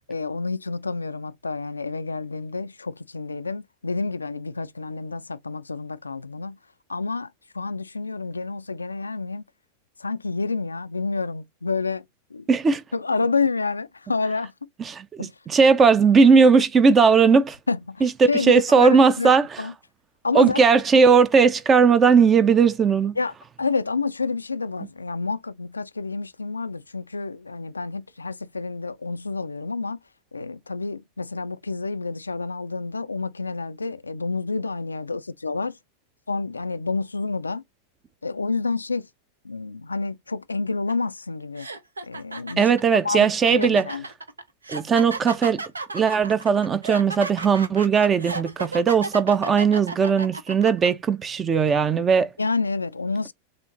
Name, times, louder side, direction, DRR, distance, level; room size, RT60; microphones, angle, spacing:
voice 1, 0.1-6.6 6.9-9.4 10.0-12.0 12.3-12.5 12.9-14.5 15.2-15.3 17.7-19.3 19.6-19.7 20.2-20.6 23.2-30.0 30.3-35.8 36.3-37.6 38.2-39.1 39.4-41.7 42.1-42.7 43.0-44.0 52.4-53.3, left 4 dB, 80° left, 0.3 m, -29 dB
voice 2, 12.5-12.8 14.9-17.6 18.0-19.5 20.3-23.1 42.6-43.9 44.7-45.6 45.9-52.3, right 5 dB, 20° right, 0.5 m, -18 dB
sound 1, 40.9-41.1 41.6-50.9, right 3 dB, 75° right, 0.6 m, -33 dB
6.5 x 2.5 x 2.7 m
figure-of-eight pair, 90°, 0 cm